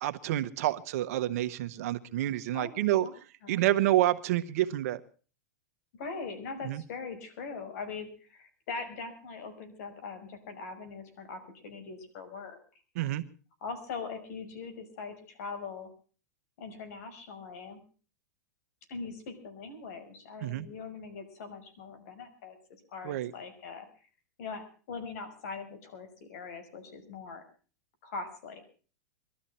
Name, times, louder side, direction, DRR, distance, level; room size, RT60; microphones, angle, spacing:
voice 1, 0.0-3.1 3.5-5.0 6.6-6.8 12.9-13.2 20.4-20.7 23.0-23.3, right 14 dB, 65° right, 12 dB, 1.2 m, -28 dB
voice 2, 2.5-3.1 3.4-3.7 6.0-12.6 13.6-15.9 16.6-17.8 18.9-22.6 22.9-23.9 24.4-27.4 28.0-28.6, left 4 dB, 65° left, 9 dB, 5.6 m, -41 dB
22.5 x 13.0 x 4.4 m, 0.39 s
hypercardioid pair, 130°, 9 cm